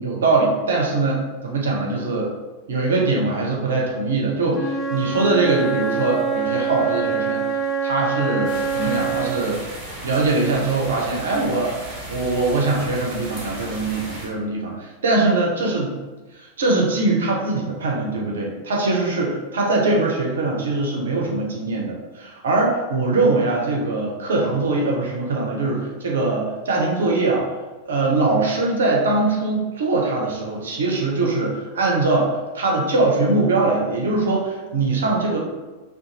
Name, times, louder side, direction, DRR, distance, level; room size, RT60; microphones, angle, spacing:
voice 1, 0.0-2.3 2.7-9.6 10.0-11.8 12.1-16.0 16.3-27.5 27.8-35.4, right 3 dB, 65° right, -1 dB, 0.5 m, -22 dB
Wind instrument woodwind instrument, 4.5-9.5, right 5 dB, 20° left, 0.4 m, -25 dB
sound 1, 8.4-14.3, right 1 dB, 30° right, 0.7 m, -35 dB
2.4 x 2.2 x 2.8 m, 1.2 s
figure-of-eight pair, 90°, 0 cm